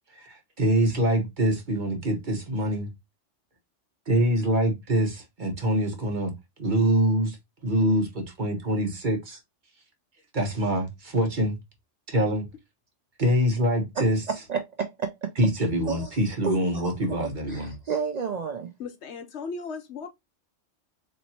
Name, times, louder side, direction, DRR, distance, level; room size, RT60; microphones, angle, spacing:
voice 1, 0.2-2.9 4.1-6.3 6.6-7.4 7.6-9.4 10.3-11.6 12.1-12.5 13.2-14.2 15.4-17.7, right 1 dB, 45° right, 1.1 m, -25 dB
voice 2, 14.0-15.3 15.6-18.7, right 6 dB, 80° right, 0.3 m, -32 dB
voice 3, 18.8-20.1, left 4 dB, 65° left, 1.0 m, -36 dB
4.2 x 2.9 x 2.7 m
omnidirectional pair, 1.3 m